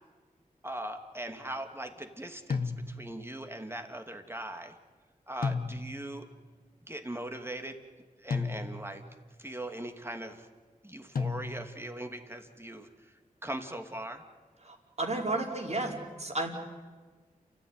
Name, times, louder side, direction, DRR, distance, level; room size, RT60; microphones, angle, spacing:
voice 1, 0.6-4.8 5.3-6.3 6.9-7.8 8.2-9.0 9.4-10.5 10.8-12.9 13.4-14.2, right 1 dB, 15° right, 5 dB, 2.8 m, -40 dB
sound 1, 2.5-3.3 5.4-6.2 8.3-9.1 11.2-11.9, left 4 dB, 85° left, 1.3 m, -34 dB
voice 2, 14.7-15.9 16.2-16.5, right 2 dB, 50° right, 1 dB, 4.8 m, -32 dB
29.0 x 14.0 x 9.8 m, 1.4 s
cardioid pair, 50°, 15 cm